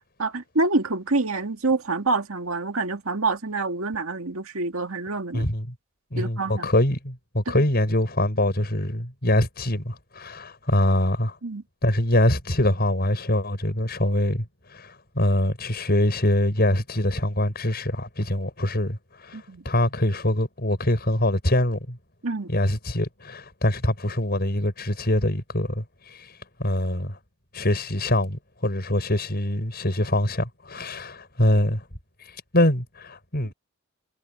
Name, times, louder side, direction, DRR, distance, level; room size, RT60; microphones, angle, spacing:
voice 1, 0.2-5.5 6.2-6.7 7.5-7.6 11.4-11.6 19.3-19.6 22.2-22.5, right 3 dB, 80° right, 2.0 m, -26 dB
voice 2, 5.3-5.7 6.1-11.4 11.8-22.0 22.5-27.2 27.5-31.9 32.2-33.5, left 1 dB, 50° left, 6.8 m, -24 dB
head